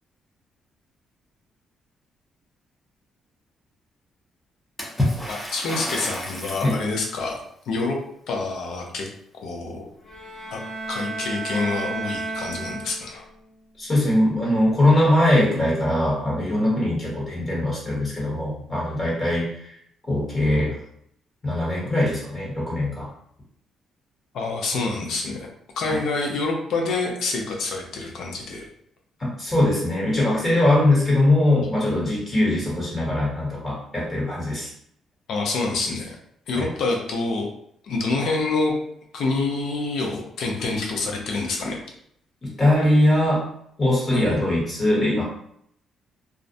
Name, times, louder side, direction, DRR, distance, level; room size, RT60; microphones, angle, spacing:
Water / Splash splatter, 4.8-6.9, left 1 dB, 5° left, 0.6 m, -28 dB
voice 1, 5.3-7.4 7.7-8.0 8.3-9.1 9.3-9.9 10.5-10.6 10.9-13.3 24.3-25.5 25.8-28.7 35.3-36.2 36.5-37.5 37.8-38.7 39.1-41.8 44.1-44.4, left 3 dB, 75° left, 1 dB, 0.6 m, -27 dB
sound 1, 10.0-13.3, right 3 dB, 55° left, 1.1 m, -32 dB
voice 2, 13.8-19.8 20.1-20.8 21.4-23.1 25.9-26.0 29.2-34.7 36.5-36.7 42.4-43.4 43.8-45.2, left 1 dB, 30° left, -5 dB, 1.1 m, -21 dB
2.4 x 2.1 x 2.5 m, 0.70 s
cardioid pair, 90°, 0 cm